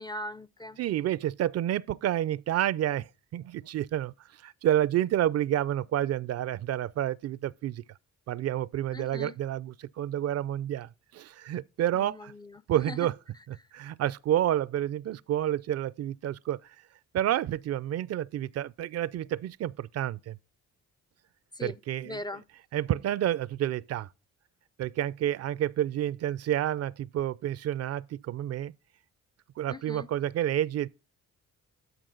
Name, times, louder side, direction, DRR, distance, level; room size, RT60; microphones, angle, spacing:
voice 1, 0.0-0.8 8.9-9.3 11.9-13.1 13.6-13.7 21.5-21.8 22.0-22.4 29.7-30.1, left 2 dB, 15° left, 0.4 m, -40 dB
voice 2, 0.8-4.1 4.4-7.8 8.3-12.3 12.7-13.1 13.5-16.7 17.1-20.4 21.6-22.2 22.7-24.1 24.8-28.7 29.6-30.9, right 12 dB, 55° right, 0.4 m, -29 dB
12.5 x 4.8 x 3.8 m
cardioid pair, 90°, 30 cm